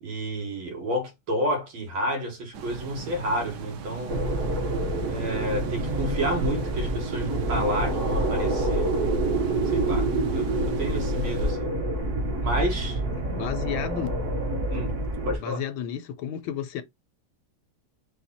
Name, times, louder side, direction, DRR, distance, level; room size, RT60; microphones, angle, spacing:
voice 1, 0.0-4.3 5.1-8.9 9.7-11.8 12.4-13.0 14.7-14.9 15.3-15.6, equal, 90° right, 2.3 m, -30 dB
sound 1, 2.5-11.5, right 7 dB, 65° right, 1.2 m, -40 dB
sound 2, 4.1-15.4, right 2 dB, 45° right, 1.2 m, -27 dB
voice 2, 13.3-14.1 15.4-16.8, left 9 dB, 80° left, 1.5 m, -32 dB
4.5 x 2.4 x 4.0 m
omnidirectional pair, 2.2 m